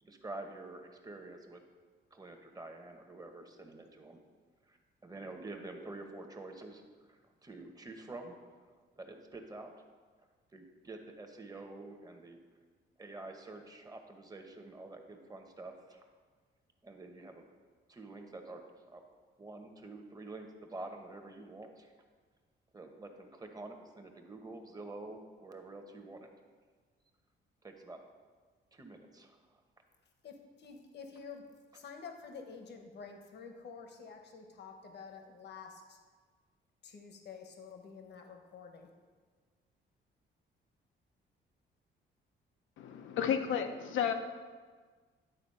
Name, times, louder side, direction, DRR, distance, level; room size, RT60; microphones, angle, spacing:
voice 1, 0.0-1.6 2.1-4.2 4.6-4.8 5.0-9.7 10.5-12.4 13.0-16.1 16.8-17.5 17.9-19.0 19.4-21.9 22.7-26.3 27.6-28.0 28.7-29.4, right 2 dB, 20° right, 4 dB, 1.0 m, -48 dB
voice 2, 30.2-31.4 31.7-36.0 36.8-38.9, left 5 dB, 60° left, 4 dB, 1.1 m, -49 dB
voice 3, 42.8-44.1, left 8 dB, 80° left, 6 dB, 0.7 m, -32 dB
10.0 x 4.1 x 5.4 m, 1.5 s
cardioid pair, 90°, 20 cm